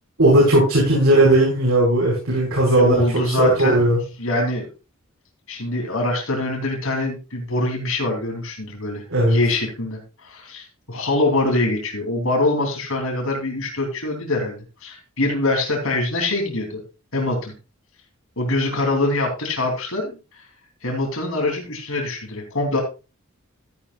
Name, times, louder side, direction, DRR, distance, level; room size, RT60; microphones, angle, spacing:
voice 1, 0.2-4.0 9.1-9.4, right 1 dB, 75° right, -5 dB, 5.1 m, -17 dB
voice 2, 2.7-3.9 4.2-4.7 5.5-16.8 17.1-17.5 18.4-20.2 20.8-22.8, left 2 dB, 80° left, 2 dB, 3.3 m, -24 dB
13.5 x 9.7 x 2.4 m, 0.30 s
head